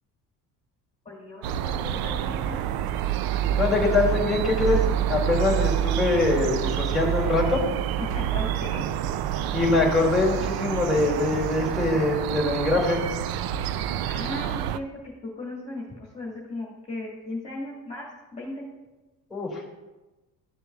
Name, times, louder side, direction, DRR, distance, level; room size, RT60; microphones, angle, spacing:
voice 1, 1.1-2.6 5.5-5.6 8.0-8.9 14.1-18.1 18.3-18.7, left 2 dB, 20° left, -4 dB, 1.8 m, -37 dB
sound 1, 1.4-14.8, right 10 dB, 80° right, 0.5 m, -27 dB
voice 2, 3.6-7.7 9.5-13.1 19.3-19.6, left 3 dB, ahead, -4 dB, 2.4 m, -23 dB
13.5 x 6.8 x 2.3 m, 1.1 s
cardioid pair, 125°, 36 cm